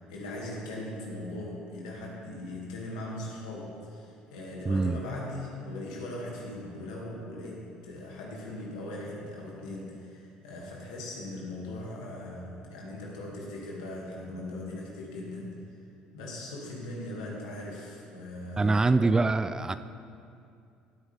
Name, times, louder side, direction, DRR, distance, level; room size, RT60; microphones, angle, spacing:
voice 1, 0.1-15.6 16.1-18.8, left 1 dB, 85° left, -3 dB, 2.5 m, -39 dB
voice 2, 4.7-5.0 18.6-19.8, right 3 dB, 20° right, 12 dB, 0.4 m, -24 dB
15.5 x 9.2 x 3.6 m, 2.5 s
hypercardioid pair, 70°, 3 cm